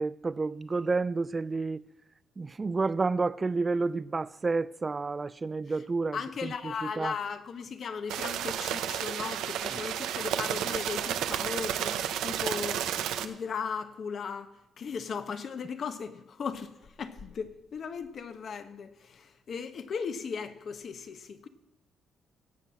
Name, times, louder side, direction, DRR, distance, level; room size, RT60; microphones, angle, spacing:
voice 1, 0.0-1.8 2.4-7.2 9.7-9.9, right 3 dB, 30° right, 0.4 m, -30 dB
voice 2, 6.1-12.9 13.2-14.5 14.8-21.5, left 6 dB, 55° left, 1.0 m, -37 dB
sound 1, 8.1-13.3, right 10 dB, 85° right, 0.7 m, -32 dB
16.5 x 5.6 x 7.5 m
cardioid pair, 90°, 0 cm